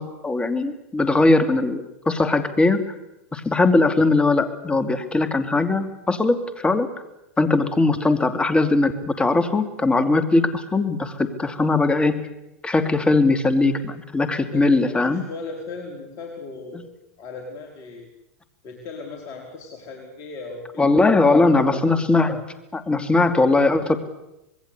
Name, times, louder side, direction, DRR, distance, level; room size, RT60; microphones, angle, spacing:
voice 1, 0.0-2.8 3.3-6.9 7.4-12.2 12.6-15.2 20.8-22.4 22.7-24.0, left 3 dB, 15° left, 9 dB, 2.8 m, -20 dB
voice 2, 14.5-16.9 17.2-18.1 18.6-20.9, left 3 dB, 40° left, 1 dB, 4.8 m, -37 dB
25.5 x 21.5 x 8.4 m, 0.89 s
hypercardioid pair, 100°, 8 cm